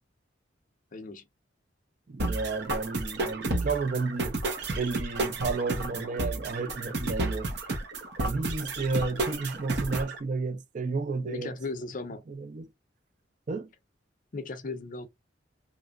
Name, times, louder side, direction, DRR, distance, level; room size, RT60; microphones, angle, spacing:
voice 1, 0.9-1.2 11.3-12.2 14.3-15.1, left 3 dB, 45° left, 0.5 m, -36 dB
voice 2, 2.1-4.4 4.7-7.5 8.2-11.5 12.3-12.6 13.5-13.7, right 4 dB, 40° right, 0.4 m, -32 dB
sound 1, 2.2-10.2, right 2 dB, 65° right, 0.9 m, -31 dB
3.0 x 2.5 x 2.4 m
head